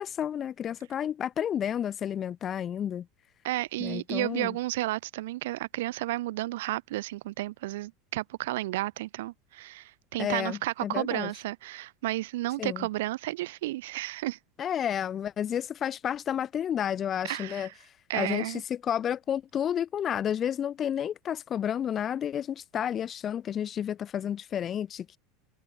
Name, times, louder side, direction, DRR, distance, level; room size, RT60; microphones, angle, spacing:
voice 1, 0.0-3.1 3.8-4.6 10.2-11.3 12.6-12.9 14.6-17.7 18.1-25.2, left 9 dB, 25° left, 0.3 m, -31 dB
voice 2, 3.4-14.4 17.2-17.7 18.1-18.6, right 17 dB, 85° right, 0.5 m, -32 dB
supercardioid pair, 165°, 0 cm